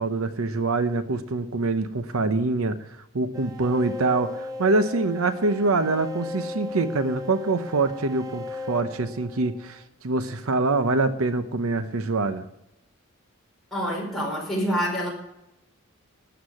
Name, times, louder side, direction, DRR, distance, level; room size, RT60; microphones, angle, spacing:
voice 1, 0.0-12.4, right 3 dB, 75° right, 11 dB, 0.8 m, -25 dB
sound 1, 3.3-9.8, left 2 dB, 15° right, 0.8 m, -37 dB
voice 2, 13.7-15.1, equal, ahead, -4 dB, 4.9 m, -26 dB
13.0 x 8.1 x 9.6 m, 0.87 s
head